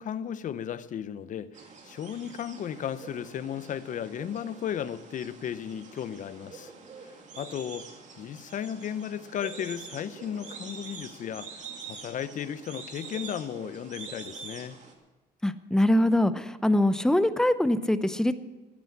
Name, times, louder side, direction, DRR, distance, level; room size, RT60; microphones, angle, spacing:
voice 1, 0.0-6.7 7.0-7.9 8.2-11.6 11.9-14.8, left 9 dB, 50° left, 0.8 m, -35 dB
sound 1, 1.5-14.9, right 5 dB, 45° right, 2.4 m, -45 dB
voice 2, 15.4-18.4, left 1 dB, 5° left, 0.7 m, -23 dB
15.0 x 9.4 x 7.2 m
cardioid pair, 110°, 17 cm